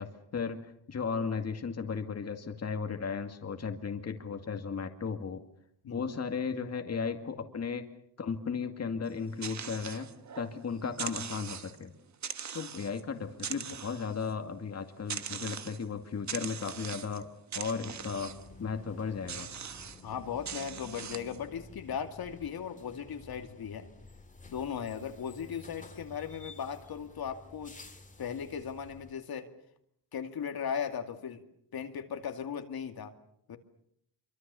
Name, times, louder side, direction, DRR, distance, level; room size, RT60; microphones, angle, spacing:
voice 1, 0.0-5.4 5.9-7.8 8.2-10.1 10.4-11.9 12.5-17.3 17.5-18.3 18.6-19.5, left 5 dB, 35° left, 5 dB, 2.2 m, -35 dB
sound 1, 9.1-10.5 10.9-11.8 12.2-13.0 13.3-14.3 15.1-15.8 16.3-17.2 17.5-18.5 19.3-20.0 20.4-21.4, right 7 dB, 40° right, 1.3 m, -41 dB
sound 2, 17.8-29.1, left 2 dB, 20° left, 2.3 m, -52 dB
voice 2, 20.0-23.9 24.5-27.8 28.2-29.5 30.1-31.4 31.7-33.1 33.5-33.6, left 7 dB, 60° left, 6 dB, 2.4 m, -37 dB
26.0 x 24.5 x 7.0 m, 0.72 s
cardioid pair, 115°, 42 cm